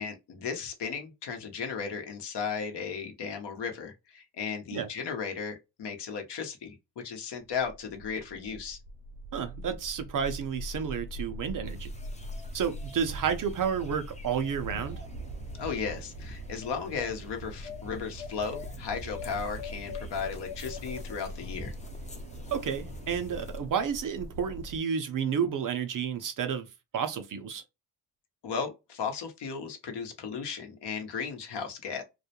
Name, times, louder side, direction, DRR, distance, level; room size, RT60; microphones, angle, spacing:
voice 1, 0.0-8.8 15.6-21.7 28.4-32.0, left 6 dB, 60° left, 0.8 m, -35 dB
sound 1, 7.5-24.8, equal, 80° right, 0.7 m, -42 dB
voice 2, 9.3-11.9 12.5-15.0 22.5-26.7 26.9-27.6, right 7 dB, 45° right, 0.5 m, -31 dB
sound 2, 11.7-23.6, left 4 dB, 15° left, 0.5 m, -46 dB
2.3 x 2.1 x 2.8 m
supercardioid pair, 65°, 48 cm